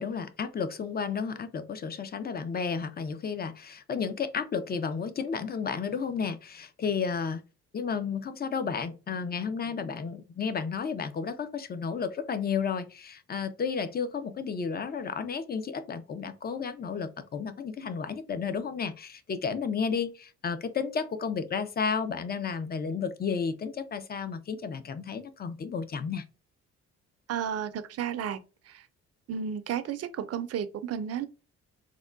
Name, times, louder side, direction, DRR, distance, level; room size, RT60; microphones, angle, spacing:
voice 1, 0.0-7.4 7.7-26.2, left 6 dB, 30° left, 0.5 m, -32 dB
voice 2, 27.3-28.4 29.3-31.3, right 8 dB, 55° right, 0.5 m, -32 dB
3.6 x 2.2 x 2.3 m
cardioid pair, 90°, 30 cm